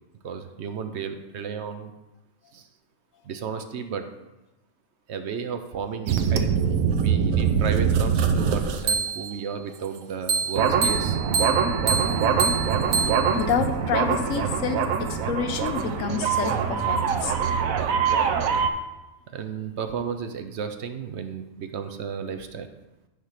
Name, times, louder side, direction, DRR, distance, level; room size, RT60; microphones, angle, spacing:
voice 1, 0.2-1.9 2.5-2.7 3.2-4.1 5.1-11.2 19.3-22.7, right 6 dB, 60° right, 8 dB, 0.9 m, -33 dB
sound 1, 6.1-9.4 10.3-18.7, right 6 dB, 85° right, 1.1 m, -23 dB
voice 2, 13.3-17.3, left 7 dB, 75° left, 7 dB, 1.1 m, -28 dB
9.5 x 3.6 x 5.7 m, 1.0 s
omnidirectional pair, 1.4 m